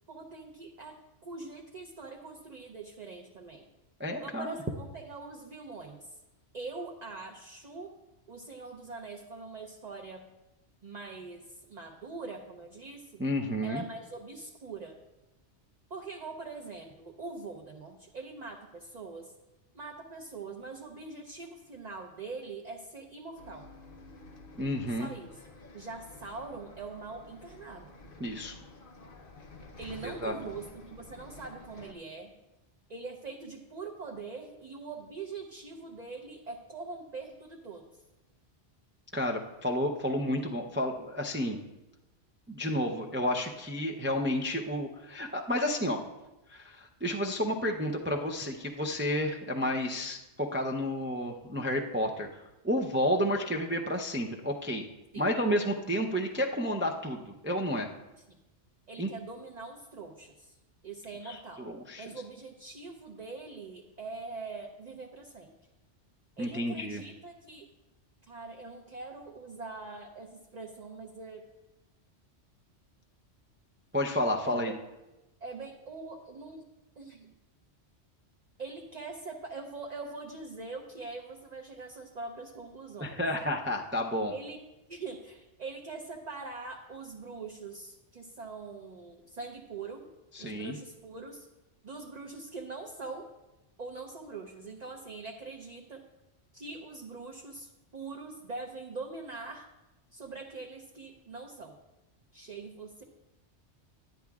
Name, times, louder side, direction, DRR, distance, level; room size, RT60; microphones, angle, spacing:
voice 1, 0.1-1.0 1.2-3.6 4.2-6.2 6.5-7.9 8.3-10.2 10.8-13.1 13.6-14.9 15.9-19.3 19.7-23.7 24.9-25.3 25.7-27.9 29.8-32.3 32.9-38.0 55.1-55.3 58.9-60.6 60.8-61.6 62.0-65.5 66.4-67.7 68.3-71.4 74.4-74.7 75.4-76.7 77.0-77.3 78.6-83.2 84.3-84.6 84.9-90.1 90.4-91.5 91.8-93.3 93.8-96.0 96.5-99.7 100.1-101.7 102.3-103.0, right 3 dB, 40° right, 1 dB, 0.8 m, -43 dB
voice 2, 4.0-4.5 13.2-13.8 24.6-25.1 28.2-28.5 30.0-30.3 39.1-41.6 42.5-46.0 46.5-54.8 55.2-57.9 59.0-59.1 61.2-62.0 66.4-67.0 73.9-74.7 83.0-84.3 90.3-90.8, equal, 20° right, 2 dB, 0.3 m, -31 dB
Bus, 23.4-31.9, left 2 dB, 50° left, 1.0 m, -51 dB
11.0 x 10.5 x 2.4 m, 0.98 s
omnidirectional pair, 1.2 m